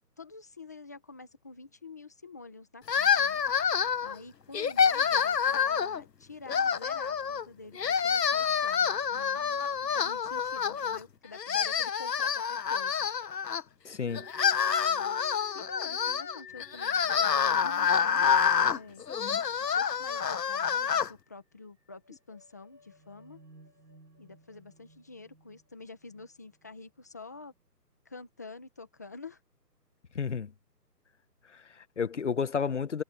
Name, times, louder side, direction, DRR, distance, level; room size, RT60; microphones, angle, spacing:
voice 1, 0.2-3.4 4.0-13.1 14.8-15.2 15.5-19.0 19.8-23.4 24.2-27.5 28.0-29.4, left 3 dB, 10° left, 1.1 m, -48 dB
sound 1, 2.9-4.2 4.5-6.0 6.5-7.4 7.8-11.0 11.3-13.6 14.1-21.1, left 7 dB, 75° left, 1.1 m, -27 dB
voice 2, 13.8-14.3 30.1-30.5 31.5-33.0, left 6 dB, 45° left, 1.0 m, -31 dB
sound 2, 14.1-20.9 21.2-21.3 21.9-27.2, left 1 dB, 80° right, 4.9 m, -54 dB
hypercardioid pair, 170°, 49 cm